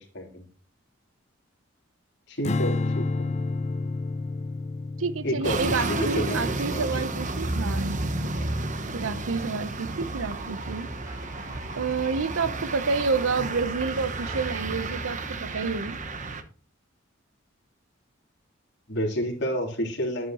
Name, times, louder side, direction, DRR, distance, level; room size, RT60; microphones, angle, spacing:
voice 1, 2.3-3.3 5.2-7.0 18.9-20.3, equal, 60° left, 3.4 m, -30 dB
Strum, 2.4-8.8, left 3 dB, 35° left, 0.6 m, -31 dB
voice 2, 5.0-8.5 8.9-10.9 11.7-16.0, right 4 dB, 80° right, 0.7 m, -29 dB
sound 1, 5.4-16.4, right 2 dB, 40° right, 1.0 m, -31 dB
sound 2, 10.0-16.3, left 1 dB, 15° right, 3.0 m, -51 dB
10.5 x 9.5 x 3.0 m
head